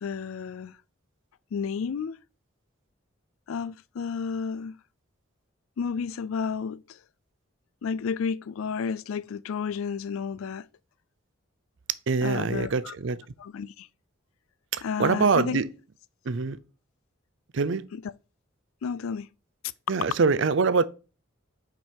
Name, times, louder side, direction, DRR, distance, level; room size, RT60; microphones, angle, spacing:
voice 1, 0.0-0.8 1.5-2.2 3.5-4.8 5.8-6.8 7.8-10.7 12.2-12.9 13.4-13.9 14.8-15.6 17.9-18.1 18.8-19.3, left 6 dB, 85° left, 0.4 m, -31 dB
voice 2, 12.1-13.2 14.7-15.7 16.3-16.6 17.5-17.8 19.9-20.8, right 4 dB, 65° right, 0.5 m, -24 dB
5.8 x 4.5 x 5.1 m
head